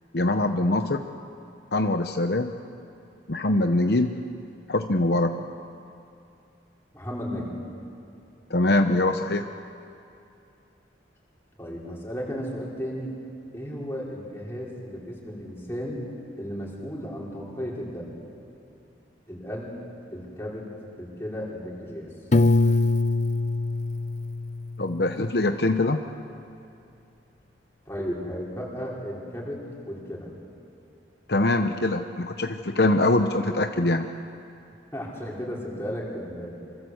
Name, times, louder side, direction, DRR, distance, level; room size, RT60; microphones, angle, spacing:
voice 1, 0.1-1.0 1.7-2.5 3.3-4.2 4.7-5.4 8.5-9.5 24.8-26.0 31.3-34.1, left 2 dB, 60° left, 6 dB, 0.9 m, -23 dB
voice 2, 6.9-7.6 11.6-13.2 13.5-16.1 16.4-18.1 19.3-19.7 20.1-20.7 21.0-22.1 27.9-30.3 34.9-36.6, equal, 15° left, -4 dB, 5.2 m, -34 dB
Piano, 22.3-25.2, left 2 dB, 40° left, 0.6 m, -23 dB
27.0 x 25.5 x 8.1 m, 2.6 s
head